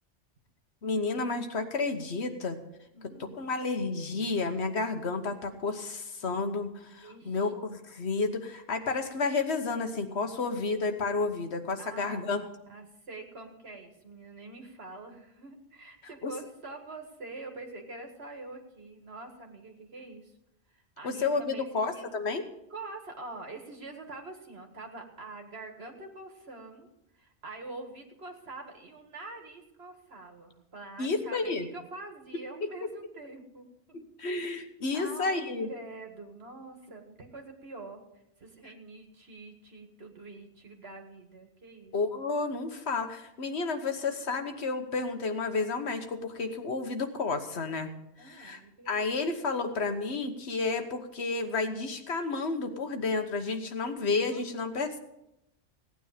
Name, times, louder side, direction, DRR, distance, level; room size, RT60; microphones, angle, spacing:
voice 1, 0.8-2.6 3.3-12.4 16.2-16.3 21.0-22.4 31.0-31.7 34.2-35.7 41.9-47.9 48.2-48.6 48.9-55.0, left 3 dB, 70° left, 6 dB, 1.4 m, -31 dB
voice 2, 2.9-3.4 7.0-7.5 11.8-20.4 20.7-22.1 22.7-26.9 27.1-34.0 34.2-34.4 34.9-41.9 48.2-48.9 54.3-54.7, right 2 dB, 60° right, 3 dB, 2.1 m, -45 dB
16.5 x 9.4 x 5.0 m, 0.85 s
omnidirectional pair, 1.2 m